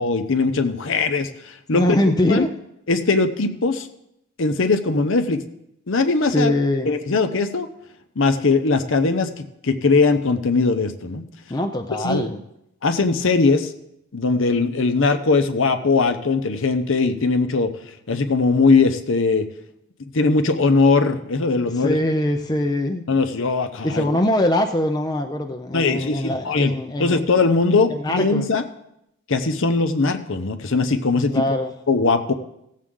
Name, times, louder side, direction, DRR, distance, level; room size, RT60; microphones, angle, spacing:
voice 1, 0.0-1.8 2.3-2.5 2.9-3.9 4.4-5.4 5.9-6.5 6.9-7.7 8.2-11.3 12.0-12.2 12.8-13.7 14.1-17.7 18.1-19.5 20.1-22.0 23.1-24.0 25.7-26.7 27.0-28.6 29.3-31.4 31.9-32.3, left 3 dB, 60° left, 9 dB, 0.8 m, -20 dB
voice 2, 1.7-2.6 6.3-6.9 11.5-12.4 21.7-23.0 23.8-27.3 27.9-28.5 31.3-31.7, left 1 dB, 20° left, 4 dB, 0.5 m, -22 dB
16.5 x 7.4 x 3.7 m, 0.82 s
head